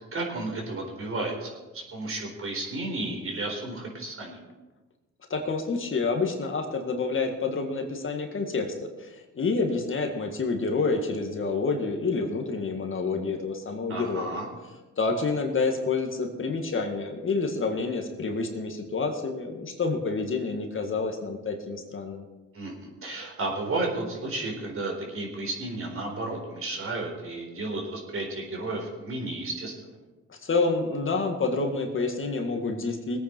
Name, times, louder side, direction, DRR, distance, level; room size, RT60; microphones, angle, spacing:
voice 1, 0.1-4.4 13.9-14.5 22.5-30.0, right 2 dB, 45° right, 0 dB, 4.2 m, -33 dB
voice 2, 5.3-14.3 15.0-22.2 30.3-33.2, left 4 dB, 40° left, 3 dB, 2.0 m, -28 dB
19.5 x 9.1 x 4.5 m, 1.2 s
cardioid pair, 90°, 30 cm